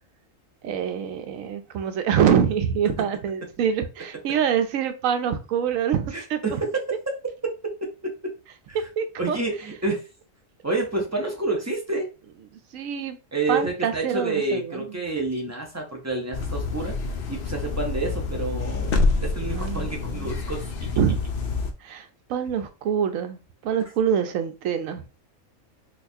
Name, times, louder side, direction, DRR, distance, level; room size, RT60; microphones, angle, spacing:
voice 1, 0.6-6.6 9.0-9.4 12.7-13.2 13.5-15.0 19.5-20.3 21.0-21.2 21.8-25.1, right 8 dB, 80° right, 1.0 m, -25 dB
voice 2, 6.1-6.7 8.2-8.3 8.7-8.8 9.2-10.0 10.6-12.1 13.3-16.9 17.3-18.9 19.2-20.6, right 3 dB, 25° right, 0.4 m, -28 dB
sound 1, 16.3-21.7, left 3 dB, 65° left, 0.6 m, -27 dB
4.1 x 2.3 x 2.6 m
omnidirectional pair, 1.4 m